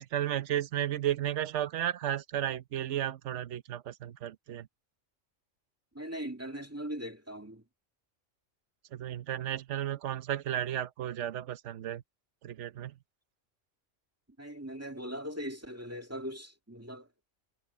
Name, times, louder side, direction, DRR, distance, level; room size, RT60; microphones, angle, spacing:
voice 1, 0.0-4.7 8.9-12.0 12.4-13.0, right 11 dB, 65° right, 1.1 m, -33 dB
voice 2, 5.9-7.6 14.4-17.1, equal, 10° right, 2.1 m, -40 dB
omnidirectional pair, 1.3 m